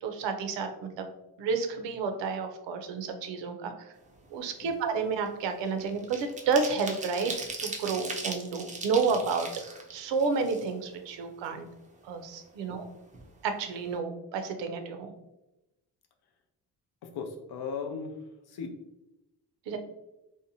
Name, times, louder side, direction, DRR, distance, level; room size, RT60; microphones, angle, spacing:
voice 1, 0.0-1.1 1.4-3.9 4.3-7.3 7.6-9.5 9.9-11.7 12.0-12.8 13.4-15.1 19.7-19.8, right 4 dB, 80° right, 6 dB, 0.6 m, -30 dB
sound 1, 4.1-4.3 4.6-11.1 11.4-11.5 11.9-12.8 13.1-13.3 13.6-13.9, right 3 dB, 20° right, 0.4 m, -39 dB
voice 2, 17.0-18.2 18.5-18.8, left 5 dB, 60° left, 5 dB, 0.6 m, -37 dB
2.7 x 2.1 x 2.6 m, 0.94 s
cardioid pair, 85°, 43 cm